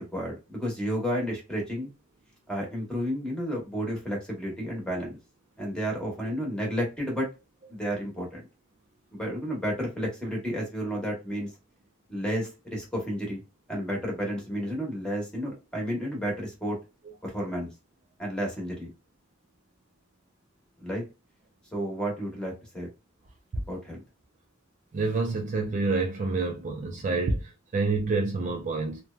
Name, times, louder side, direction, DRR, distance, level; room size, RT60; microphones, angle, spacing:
voice 1, 0.0-1.9 2.5-5.2 5.6-7.3 7.7-8.4 9.1-11.5 12.1-13.4 13.7-16.8 17.2-17.7 18.2-18.9 20.8-21.0 21.7-22.9 23.5-24.0, equal, 5° left, 0.9 m, -31 dB
voice 2, 24.9-29.0, right 3 dB, 35° right, 0.4 m, -28 dB
2.8 x 2.1 x 2.3 m
head